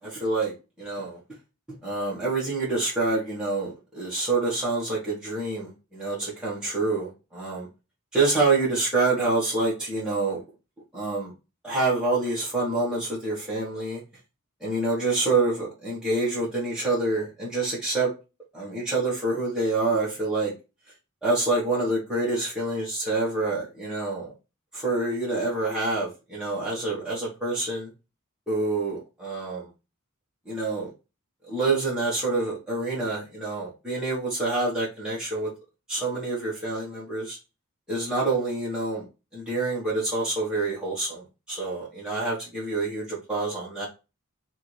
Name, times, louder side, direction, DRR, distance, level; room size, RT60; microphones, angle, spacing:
voice 1, 0.2-0.5 0.8-1.2 1.8-7.7 8.1-10.4 10.9-11.3 11.6-14.0 14.6-18.1 18.5-20.5 21.2-24.3 24.7-27.9 28.5-29.6 30.5-30.9 31.5-35.5 35.9-37.4 37.9-39.0 39.3-41.2 41.5-43.9, right 2 dB, 5° right, -8 dB, 1.4 m, -27 dB
3.6 x 2.6 x 4.5 m, 0.28 s
head